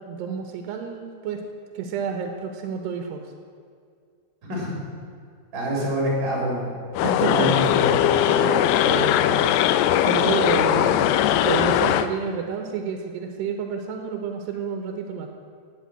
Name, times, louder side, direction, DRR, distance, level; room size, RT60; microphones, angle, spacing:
voice 1, 0.0-1.4 1.7-3.2 7.0-7.6 8.3-9.8 10.0-11.1 11.4-15.3, right 6 dB, 85° right, 4 dB, 3.2 m, -30 dB
voice 2, 5.5-6.7 7.1-8.0, equal, 30° right, -3 dB, 3.8 m, -26 dB
sound 1, 7.0-12.1, left 11 dB, 85° left, 2.7 m, -20 dB
17.0 x 8.5 x 9.0 m, 2.2 s
omnidirectional pair, 4.7 m